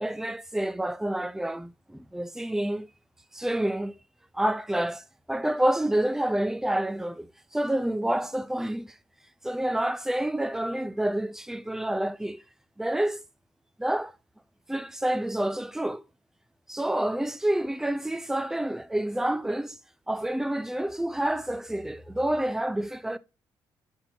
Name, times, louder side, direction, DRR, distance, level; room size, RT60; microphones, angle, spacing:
voice 1, 0.0-2.9 3.3-4.0 4.3-7.3 7.5-8.9 9.4-12.4 12.8-13.2 13.8-14.1 14.7-16.0 16.7-19.8 20.1-23.2, right 1 dB, 5° right, 0.5 m, -28 dB
8.6 x 4.4 x 2.7 m
cardioid pair, 75°, 9 cm